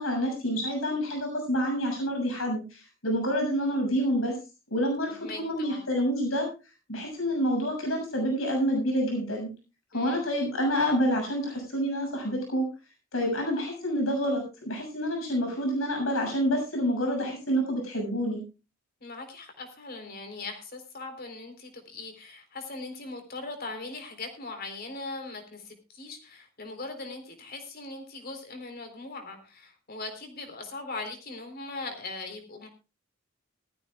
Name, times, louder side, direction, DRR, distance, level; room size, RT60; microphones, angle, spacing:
voice 1, 0.0-4.4 4.7-6.5 6.9-9.5 9.9-12.6 13.1-18.4, equal, 90° left, 2 dB, 6.7 m, -28 dB
voice 2, 5.1-5.9 9.9-10.2 19.0-32.7, left 3 dB, 50° left, 5 dB, 3.9 m, -40 dB
19.5 x 14.5 x 2.4 m, 0.30 s
head